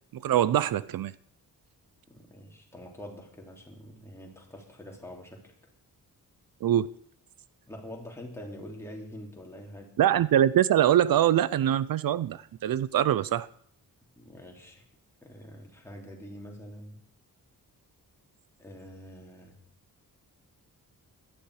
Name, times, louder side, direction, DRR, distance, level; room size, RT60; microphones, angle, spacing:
voice 1, 0.1-1.1 6.6-6.9 10.0-13.5, right 11 dB, 75° right, 0.6 m, -23 dB
voice 2, 2.1-5.5 7.7-9.9 14.2-14.8 15.2-17.0 18.6-19.6, equal, 5° left, 3.3 m, -45 dB
17.0 x 12.5 x 4.9 m
wide cardioid pair, 165°, 35 cm